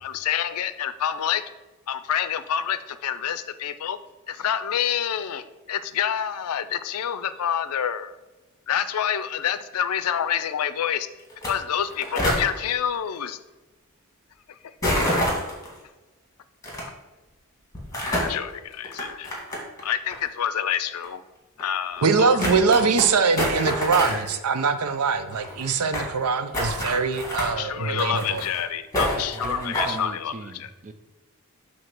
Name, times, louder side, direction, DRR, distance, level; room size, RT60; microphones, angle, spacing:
voice 1, 0.0-1.4 1.9-4.0 4.3-8.2 8.7-11.1 11.5-13.4 14.5-14.9 18.1-19.3 19.8-21.2 21.6-22.5 27.4-30.7, left 9 dB, 85° left, 13 dB, 0.4 m, -27 dB
sound 1, 11.3-11.5 11.7-12.4 14.8-15.7 16.6-16.8 17.7-18.4 18.8-19.8 20.1-20.2 21.0-21.1 21.6-21.7 22.0-22.1 22.4-23.1 23.4-24.3 24.6-24.7 24.9-25.0 25.2-26.1 26.5-27.5 27.9-28.6 28.9-30.0, equal, 15° left, 1.9 m, -26 dB
voice 2, 22.0-28.4, right 5 dB, 90° right, 10 dB, 0.6 m, -22 dB
voice 3, 29.1-30.9, right 2 dB, 35° right, 9 dB, 0.5 m, -38 dB
7.7 x 2.8 x 6.0 m, 1.1 s
head